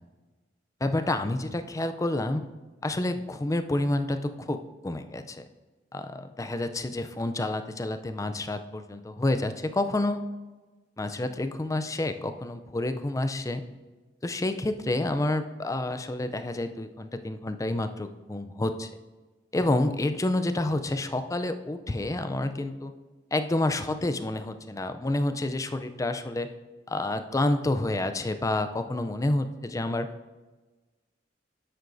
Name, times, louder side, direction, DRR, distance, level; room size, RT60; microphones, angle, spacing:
voice 1, 0.8-2.4 2.8-4.6 4.8-5.5 5.9-10.2 11.0-13.6 14.2-18.9 19.5-22.9 23.3-26.5 26.9-30.1, left 2 dB, 20° left, 9 dB, 0.4 m, -29 dB
10.5 x 7.8 x 2.6 m, 1.2 s
head